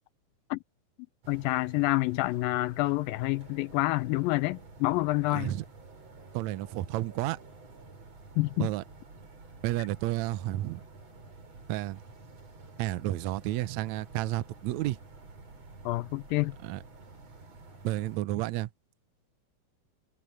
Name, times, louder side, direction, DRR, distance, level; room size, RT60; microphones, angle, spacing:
sound 1, 1.2-18.2, right 3 dB, 45° right, 5.6 m, -50 dB
voice 1, 1.3-5.5 8.4-8.7 15.9-16.6, left 20 dB, 80° left, 2.2 m, -28 dB
voice 2, 5.3-5.6 6.3-7.4 8.6-8.8 9.6-10.8 11.7-12.0 12.8-15.0 16.6-16.8 17.8-18.7, right 15 dB, 80° right, 1.6 m, -31 dB
omnidirectional pair, 4.3 m